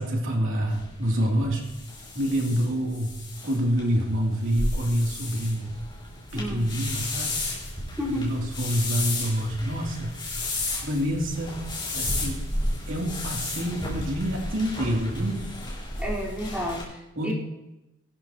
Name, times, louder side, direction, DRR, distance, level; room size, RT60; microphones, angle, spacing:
voice 1, 0.0-1.7 2.1-3.2 3.4-5.7 6.3-7.4 8.1-10.4 10.8-11.6 11.9-12.4 12.9-15.4 17.2-17.3, equal, 60° right, -1 dB, 3.1 m, -27 dB
sound 1, 0.7-16.8, left 2 dB, 20° left, 4.6 m, -33 dB
voice 2, 6.3-6.6 8.0-8.3 16.0-17.3, equal, 5° right, -7 dB, 4.4 m, -31 dB
22.5 x 12.5 x 3.0 m, 0.95 s
head